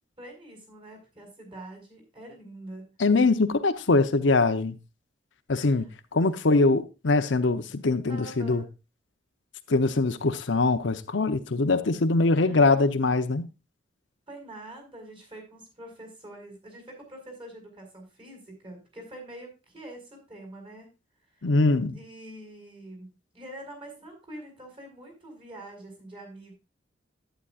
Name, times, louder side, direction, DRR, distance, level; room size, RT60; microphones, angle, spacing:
voice 1, 0.2-2.9 8.1-8.7 12.3-12.7 14.3-20.9 21.9-26.5, right 1 dB, 30° right, 4.6 m, -45 dB
voice 2, 3.0-4.8 5.5-5.9 6.1-8.6 9.7-13.5 21.4-22.0, left 3 dB, 80° left, 0.8 m, -23 dB
11.0 x 9.1 x 2.4 m
head